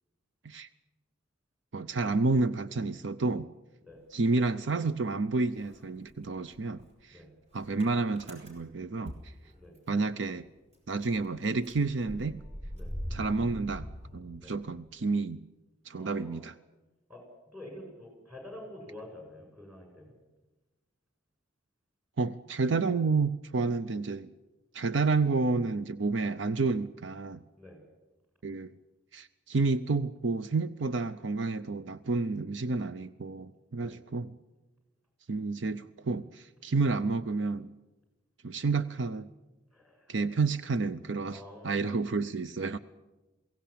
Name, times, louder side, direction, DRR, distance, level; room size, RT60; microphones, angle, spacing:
voice 1, 1.7-3.5 4.1-7.2 7.5-9.3 9.9-10.5 10.9-12.4 13.1-13.9 14.1-15.4 15.9-16.5 22.2-24.3 24.7-27.4 28.4-28.7 29.1-34.3 35.3-37.7 38.4-39.3 40.1-42.8, right 3 dB, 70° right, 13 dB, 0.6 m, -30 dB
Motor vehicle (road) / Engine starting, 3.9-5.1 5.4-10.1 10.4-10.5 10.7-14.8, equal, 35° right, 6.2 m, -44 dB
voice 2, 15.9-16.4 17.1-17.2 17.5-20.2 27.6-27.8 33.8-34.0 36.7-36.8 39.7-40.1 41.3-42.0, left 1 dB, 10° right, 3 dB, 6.9 m, -48 dB
22.5 x 17.0 x 8.7 m, 1.1 s
head